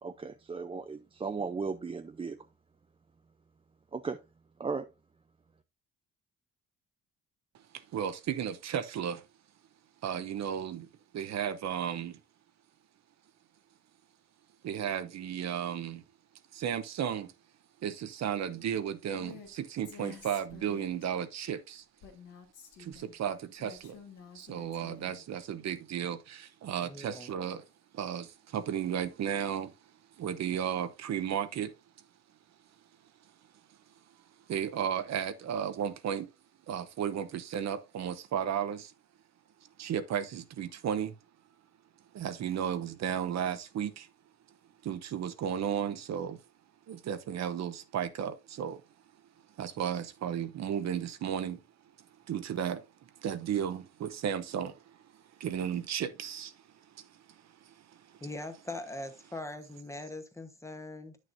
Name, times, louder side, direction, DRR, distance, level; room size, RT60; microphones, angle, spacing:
voice 1, 0.0-2.4 3.9-4.2 4.6-4.9, right 4 dB, 20° right, 0.4 m, -36 dB
voice 2, 7.5-9.2 10.0-12.2 14.6-16.0 16.5-17.3 17.8-21.8 22.8-24.0 24.3-27.7 27.9-29.7 30.2-31.7 34.5-36.3 36.7-38.9 39.8-41.1 42.1-44.1 44.8-46.4 46.9-48.8 49.6-51.6 52.3-58.2, right 9 dB, 60° right, 0.8 m, -34 dB
Female speech woman speaking, 19.1-19.5 19.8-21.1 22.0-23.1 23.6-25.2, left 7 dB, 85° left, 2.1 m, -50 dB
voice 3, 26.8-27.3 58.2-61.2, left 2 dB, 10° left, 1.1 m, -41 dB
9.0 x 6.3 x 2.6 m
cardioid pair, 90°, 30 cm